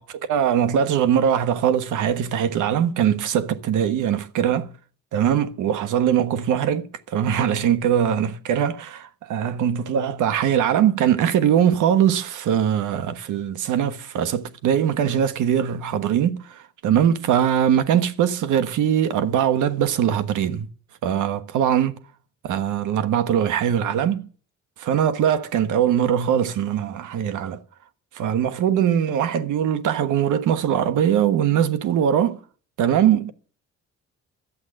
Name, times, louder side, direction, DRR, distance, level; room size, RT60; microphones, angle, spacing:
voice 1, 0.3-4.7 5.1-20.7 21.0-22.0 22.4-24.3 24.8-27.6 28.1-32.4 32.8-33.3, right 9 dB, 85° right, 1.3 m, -21 dB
12.5 x 8.2 x 7.6 m
cardioid pair, 90°, 30 cm